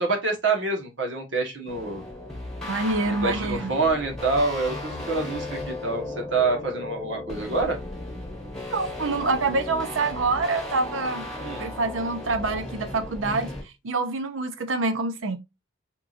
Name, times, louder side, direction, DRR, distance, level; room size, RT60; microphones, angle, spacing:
voice 1, 0.0-2.1 3.1-7.8 11.4-11.7, right 3 dB, 70° right, 1.3 m, -26 dB
sound 1, 1.7-13.6, left 1 dB, 5° left, 1.6 m, -35 dB
voice 2, 2.7-3.7 8.7-11.3 11.6-15.4, right 3 dB, 85° right, 0.6 m, -26 dB
4.6 x 3.7 x 2.5 m
head